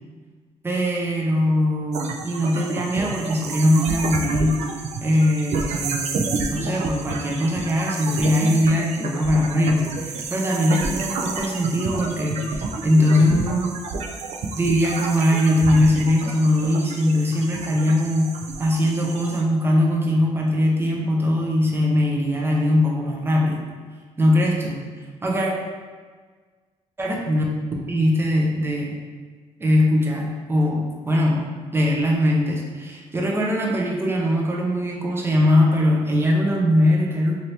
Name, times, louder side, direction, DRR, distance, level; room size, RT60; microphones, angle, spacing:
voice 1, 0.6-4.6 5.0-13.7 14.6-18.3 18.6-23.7 24.2-24.8 25.2-25.5 27.0-27.4 27.9-28.9 29.6-31.4 31.7-37.3, left 1 dB, 20° right, -2 dB, 0.6 m, -21 dB
sound 1, 1.9-19.4, right 3 dB, 65° right, 0.4 m, -30 dB
2.8 x 2.6 x 3.2 m, 1.5 s
cardioid pair, 115°, 12 cm